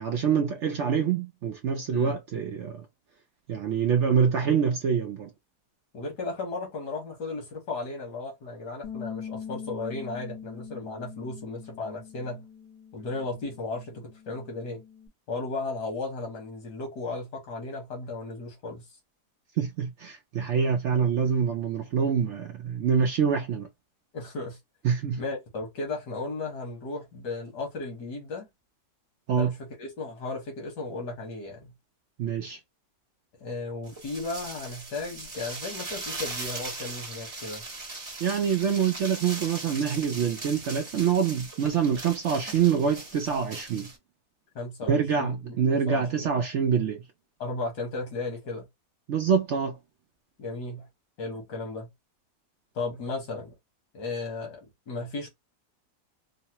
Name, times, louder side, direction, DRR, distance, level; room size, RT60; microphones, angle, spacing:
voice 1, 0.0-2.8 3.5-5.3 19.6-23.7 24.8-25.2 29.3-29.5 32.2-32.6 38.2-43.9 44.9-47.0 49.1-49.8, right 7 dB, 65° right, 0.7 m, -25 dB
voice 2, 5.9-12.4 12.9-14.8 15.3-18.8 24.1-24.6 25.2-28.5 29.3-31.7 33.4-37.6 44.6-45.4 45.9-46.3 47.4-48.7 50.4-50.9 51.2-51.9 52.8-53.6 53.9-54.6 54.9-55.3, left 3 dB, 90° left, 1.9 m, -35 dB
Bass guitar, 8.8-15.1, left 7 dB, 65° left, 1.8 m, -43 dB
sound 1, 33.9-44.0, right 2 dB, 20° right, 0.9 m, -39 dB
3.9 x 2.1 x 2.8 m
omnidirectional pair, 1.7 m